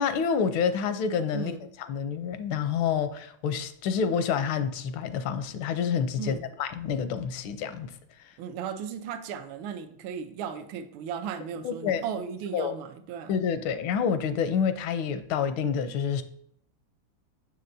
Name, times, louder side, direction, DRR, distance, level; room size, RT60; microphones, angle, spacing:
voice 1, 0.0-1.6 1.9-7.9 8.2-8.3 11.6-12.0 12.5-12.8 13.3-16.2, left 7 dB, 85° left, 1.4 m, -28 dB
voice 2, 1.3-1.7 6.2-6.5 8.4-13.4, right 7 dB, 80° right, 1.4 m, -36 dB
6.7 x 6.5 x 2.6 m
omnidirectional pair, 2.2 m